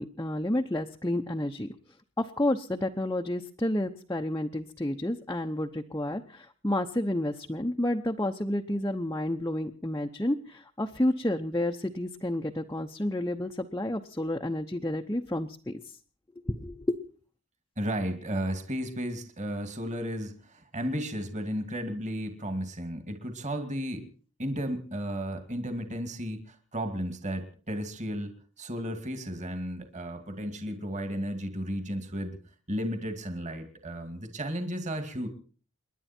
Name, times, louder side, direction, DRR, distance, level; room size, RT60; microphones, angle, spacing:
voice 1, 0.0-1.7 2.2-15.8 16.4-17.0, left 1 dB, 15° left, 2 dB, 0.8 m, -30 dB
voice 2, 17.8-24.1 24.4-32.4 32.7-35.3, equal, 30° right, 8 dB, 2.4 m, -34 dB
29.5 x 11.0 x 4.4 m, 0.41 s
head